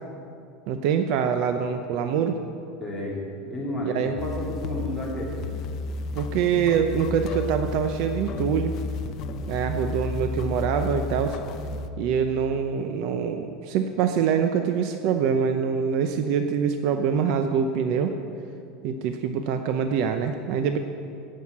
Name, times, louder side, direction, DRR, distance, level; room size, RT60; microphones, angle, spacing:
voice 1, 0.7-2.4 3.9-4.1 6.1-8.8 9.5-11.4 12.0-18.2 18.8-20.8, right 7 dB, 50° right, 7 dB, 0.7 m, -24 dB
voice 2, 2.8-5.4, left 1 dB, ahead, -7 dB, 2.9 m, -31 dB
sound 1, 4.2-11.9, left 4 dB, 40° left, 0.6 m, -32 dB
16.5 x 6.5 x 8.5 m, 2.5 s
supercardioid pair, 170°, 0 cm